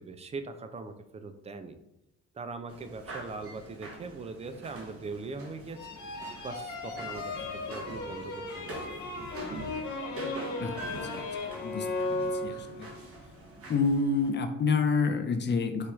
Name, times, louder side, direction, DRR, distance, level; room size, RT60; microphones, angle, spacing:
voice 1, 0.0-1.8 2.3-6.0 6.4-9.2, right 3 dB, 20° right, 9 dB, 0.3 m, -41 dB
sound 1, 2.7-14.3, right 2 dB, 50° right, 1.1 m, -45 dB
sound 2, 5.8-12.9, left 2 dB, 75° left, 0.9 m, -36 dB
voice 2, 12.1-12.6 13.7-15.9, left 4 dB, 35° left, 6 dB, 0.5 m, -27 dB
4.5 x 2.3 x 3.0 m, 0.87 s
cardioid pair, 90°, 30 cm